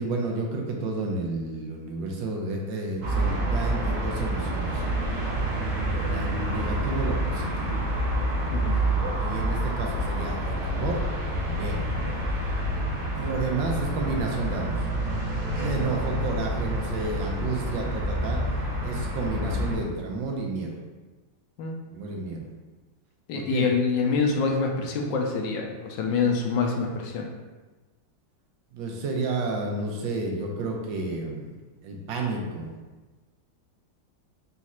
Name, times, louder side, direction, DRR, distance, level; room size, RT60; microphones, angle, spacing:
voice 1, 0.0-4.8 6.0-7.8 8.5-11.1 11.4-11.9 13.1-14.7 15.6-18.4 18.8-20.8 21.9-22.5 23.3-23.7 28.7-31.5 31.8-32.7, right 3 dB, 80° right, 1 dB, 1.4 m, -31 dB
sound 1, 3.0-19.8, right 1 dB, 60° right, 1.4 m, -28 dB
voice 2, 23.3-27.3, left 5 dB, 75° left, 1 dB, 1.3 m, -26 dB
4.1 x 2.4 x 4.2 m, 1.2 s
omnidirectional pair, 2.1 m